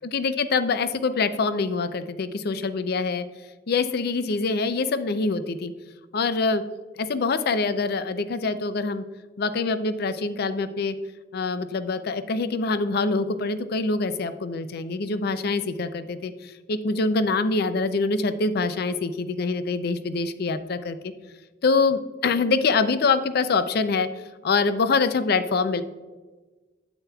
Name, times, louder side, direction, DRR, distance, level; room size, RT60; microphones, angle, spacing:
voice 1, 0.0-3.2 3.7-5.7 6.1-6.6 6.9-9.0 9.4-10.9 11.3-21.0 21.6-24.1 24.4-25.8, left 4 dB, 60° left, 12 dB, 0.5 m, -25 dB
8.8 x 8.3 x 2.3 m, 1.3 s
head